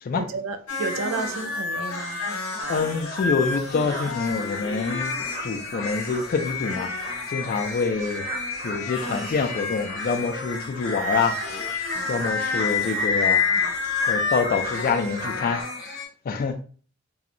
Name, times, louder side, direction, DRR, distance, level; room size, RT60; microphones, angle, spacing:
voice 1, 0.1-2.2, right 4 dB, 70° right, 0.4 m, -31 dB
sound 1, 0.7-16.1, left 4 dB, 85° left, 0.6 m, -29 dB
sound 2, 2.6-15.6, right 1 dB, 35° right, 0.7 m, -40 dB
voice 2, 2.7-5.1 5.4-6.9 7.3-8.3 8.6-11.4 12.1-13.4 14.1-15.6 16.2-16.6, left 5 dB, 45° left, 0.3 m, -26 dB
2.7 x 2.1 x 2.5 m
head